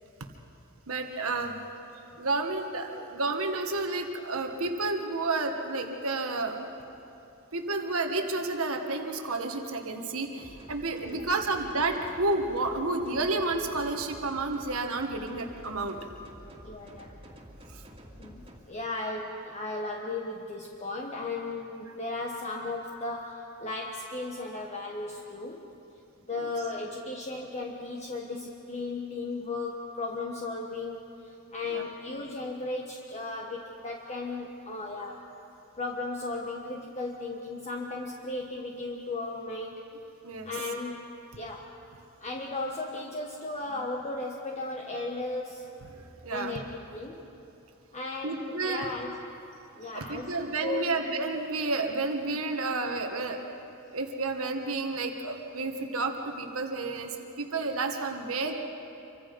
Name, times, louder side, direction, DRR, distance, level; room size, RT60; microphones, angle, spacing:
voice 1, 0.9-1.5 2.2-6.7 7.5-16.0 17.7-17.8 26.3-26.5 31.6-31.9 40.2-40.5 45.9-46.6 48.2-48.9 49.8-53.4 53.9-58.5, right 3 dB, 70° right, 4 dB, 1.6 m, -31 dB
sound 1, 10.4-18.6, equal, 25° right, 2.4 m, -49 dB
voice 2, 16.6-17.1 18.2-25.6 26.3-35.3 35.8-39.8 40.4-41.1 41.4-41.7 42.2-45.6 46.3-47.2 47.9-49.1 49.7-51.0, left 2 dB, 35° left, -1 dB, 1.4 m, -36 dB
27.0 x 24.5 x 5.4 m, 2.9 s
head